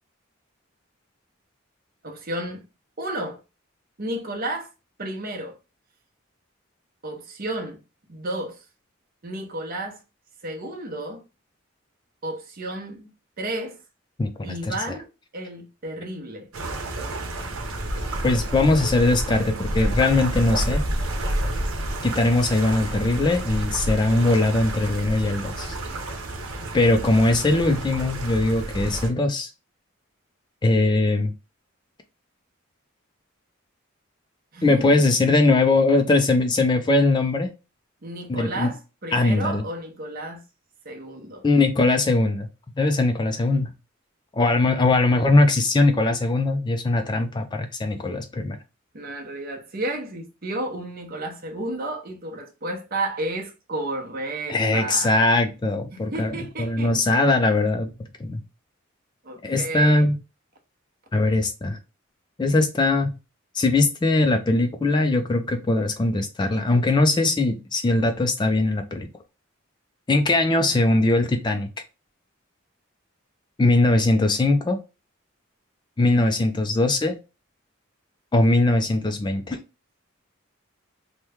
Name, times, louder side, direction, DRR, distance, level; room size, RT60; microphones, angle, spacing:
voice 1, 2.0-2.6 3.0-3.4 4.0-4.7 5.0-5.5 7.0-7.8 8.1-8.6 9.2-10.0 10.4-11.2 12.2-13.1 13.4-13.8 14.4-16.5 34.5-34.8 38.0-40.4 40.8-41.4 48.9-55.3 55.9-57.0 59.2-60.1, right 1 dB, 45° right, 0.8 m, -32 dB
voice 2, 14.2-15.0 18.2-20.8 22.0-25.8 26.7-29.5 30.6-31.3 34.6-37.5 38.3-38.7 39.1-39.6 41.4-42.5 42.8-43.7 44.3-48.6 54.5-57.9 58.2-58.4 59.4-60.2 61.1-61.8 62.4-63.1 63.5-69.1 70.1-71.7 73.6-74.8 76.0-77.1 78.3-79.6, left 2 dB, 20° left, 0.3 m, -21 dB
sound 1, 16.5-29.1, right 1 dB, 85° right, 0.8 m, -29 dB
3.0 x 2.2 x 3.4 m
head